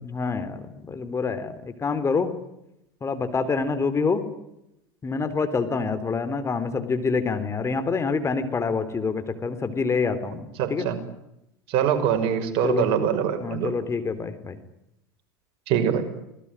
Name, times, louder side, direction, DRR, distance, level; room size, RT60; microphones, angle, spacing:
voice 1, 0.0-2.3 3.0-4.3 5.0-10.9 12.6-12.9 13.4-14.6, left 4 dB, 25° left, 10 dB, 3.6 m, -26 dB
voice 2, 10.6-11.0 11.7-13.8 15.7-16.0, right 8 dB, 55° right, 6 dB, 5.9 m, -23 dB
27.0 x 19.5 x 9.9 m, 0.86 s
hypercardioid pair, 85°, 12 cm